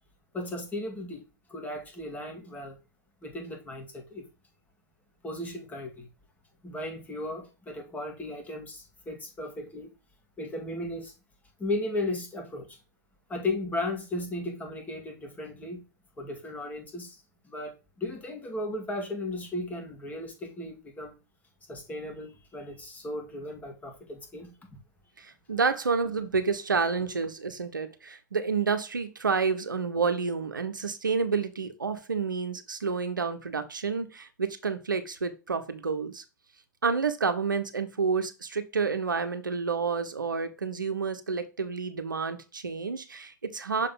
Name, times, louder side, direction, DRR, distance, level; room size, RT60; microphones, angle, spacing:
voice 1, 0.3-1.2 1.5-2.8 3.2-4.3 5.2-6.1 6.6-9.9 10.4-11.1 11.6-12.8 13.3-15.8 16.2-21.2 21.7-24.5, left 2 dB, 15° left, 2.0 m, -36 dB
voice 2, 25.2-36.2 36.8-43.9, right 5 dB, 90° right, 0.9 m, -29 dB
6.5 x 3.8 x 3.8 m
hypercardioid pair, 110°, 10 cm